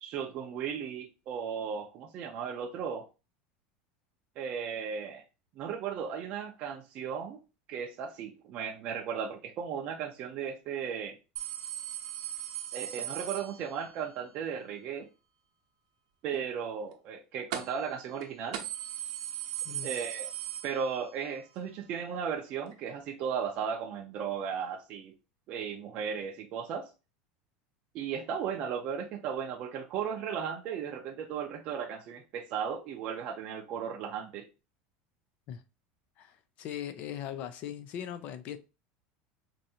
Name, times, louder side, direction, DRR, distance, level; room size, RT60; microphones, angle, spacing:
voice 1, 0.0-3.0 4.4-5.2 5.6-7.4 7.7-11.2 12.7-15.1 16.2-18.6 19.8-20.3 20.6-25.1 25.5-26.9 27.9-34.5, right 7 dB, 35° right, 0.5 m, -36 dB
sound 1, 11.4-14.1 17.5-17.9 18.2-18.3 18.5-21.3 21.6-21.7 22.7-22.8, right 11 dB, 75° right, 0.8 m, -38 dB
voice 2, 36.2-38.6, left 10 dB, 40° left, 0.4 m, -39 dB
4.6 x 2.6 x 2.7 m
supercardioid pair, 165°, 4 cm